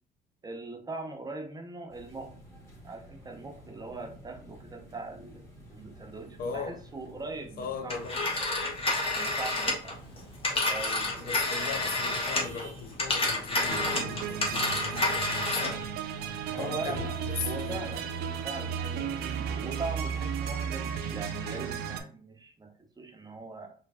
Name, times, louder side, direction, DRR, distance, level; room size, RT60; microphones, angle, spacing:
voice 1, 0.4-2.3 2.8-5.4 5.7-8.4 9.1-10.0 10.7-11.6 16.5-17.1 17.4-18.1 18.4-23.7, right 3 dB, 20° right, 0.8 m, -41 dB
sound 1, 1.9-20.5, right 1 dB, 15° left, 1.9 m, -49 dB
voice 2, 6.4-6.8 7.6-8.2 11.2-15.9 16.6-17.9, left 6 dB, 60° left, 0.5 m, -38 dB
Telephone, 7.9-12.6 12.9-15.8, left 2 dB, 35° left, 1.2 m, -29 dB
sound 2, 13.7-22.0, right 7 dB, 70° right, 0.5 m, -34 dB
4.5 x 3.2 x 2.4 m
cardioid pair, 110°, 17 cm